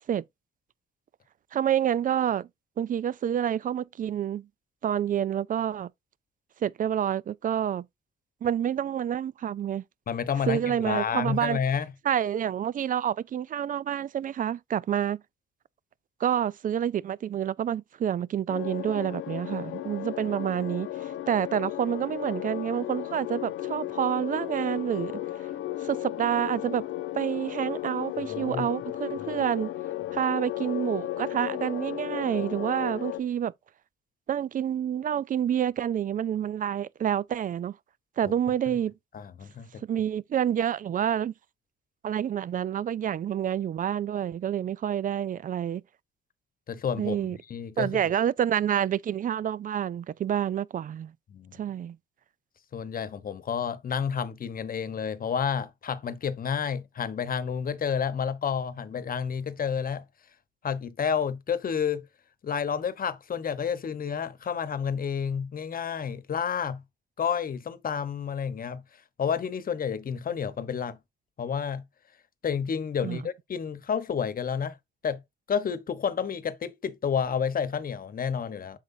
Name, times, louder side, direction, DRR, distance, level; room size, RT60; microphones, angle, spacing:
voice 1, 1.5-2.5 2.8-4.5 4.8-5.9 6.6-7.9 8.4-9.8 10.5-11.6 12.0-15.2 16.2-25.2 25.8-26.8 27.1-29.7 30.1-33.5 34.3-37.8 38.2-38.9 39.8-41.3 42.0-45.8 47.0-47.4 47.8-51.1 51.6-52.0 73.0-73.2, right 9 dB, 45° right, 0.4 m, -28 dB
voice 2, 10.1-11.9 28.3-28.7 38.7-38.8 39.1-39.8 46.7-47.2 47.5-47.9 51.3-51.6 52.7-60.0 60.6-62.1 62.4-66.8 67.2-68.8 69.2-71.0 71.4-71.8 72.4-74.8 75.0-75.2 75.5-78.8, left 7 dB, 45° left, 1.1 m, -30 dB
sound 1, 18.5-33.2, left 13 dB, 80° left, 1.0 m, -35 dB
7.9 x 6.4 x 2.7 m
cardioid pair, 90°, 20 cm